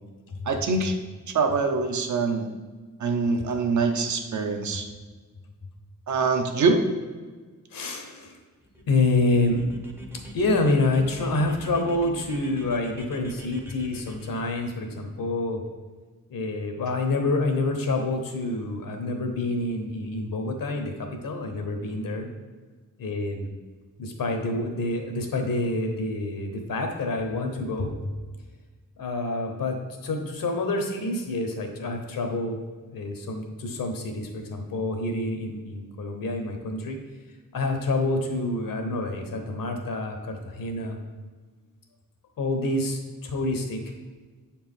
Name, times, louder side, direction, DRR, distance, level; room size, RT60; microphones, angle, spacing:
voice 1, 0.5-1.0 1.3-2.5 3.0-4.9 6.1-6.9, right 4 dB, 60° right, 5 dB, 0.7 m, -24 dB
voice 2, 7.7-8.4 8.9-9.6 10.3-15.6 16.3-22.3 23.0-23.5 24.0-28.1 29.0-29.8 30.0-32.6 32.8-37.0 37.5-41.0 42.4-43.9, left 2 dB, 75° left, 4 dB, 1.0 m, -27 dB
sound 1, 8.6-14.7, right 1 dB, 5° right, 0.6 m, -44 dB
7.0 x 4.3 x 3.7 m, 1.4 s
wide cardioid pair, 170°, 34 cm